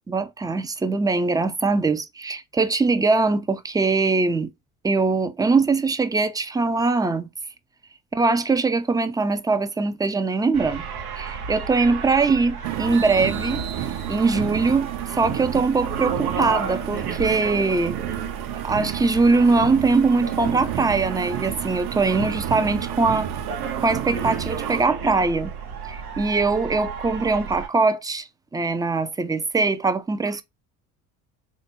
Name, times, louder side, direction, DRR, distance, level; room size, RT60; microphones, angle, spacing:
voice 1, 0.1-4.5 4.8-7.3 8.1-10.9 11.2-13.6 14.1-18.0 18.6-23.3 23.8-25.5 25.9-28.3 28.5-30.4, right 3 dB, 10° right, 0.4 m, -22 dB
sound 1, 10.5-27.7, right 6 dB, 90° right, 0.9 m, -33 dB
sound 2, 12.6-24.9, right 11 dB, 50° right, 0.7 m, -31 dB
3.5 x 2.5 x 3.9 m
hypercardioid pair, 60°, 42 cm